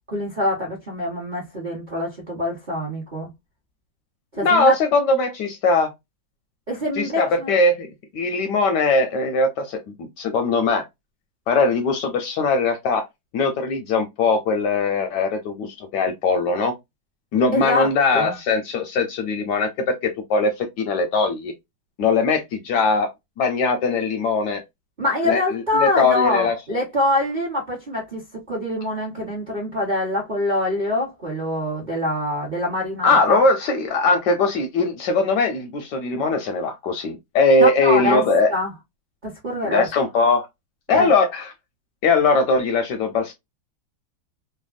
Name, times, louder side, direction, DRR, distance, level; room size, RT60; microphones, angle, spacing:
voice 1, 0.1-3.3 4.4-4.7 6.7-7.5 17.5-17.9 18.1-18.3 25.0-33.4 37.6-38.2 38.5-38.7 39.2-39.9 40.9-41.1, left 1 dB, 45° right, 0.6 m, -24 dB
voice 2, 4.3-5.9 7.0-10.8 11.5-13.1 13.3-16.7 17.3-21.5 22.0-23.1 23.4-24.6 25.2-26.6 33.0-38.5 39.6-40.5 40.9-41.5 42.0-43.3, left 3 dB, 75° left, 1.0 m, -20 dB
3.3 x 2.1 x 2.3 m
omnidirectional pair, 2.2 m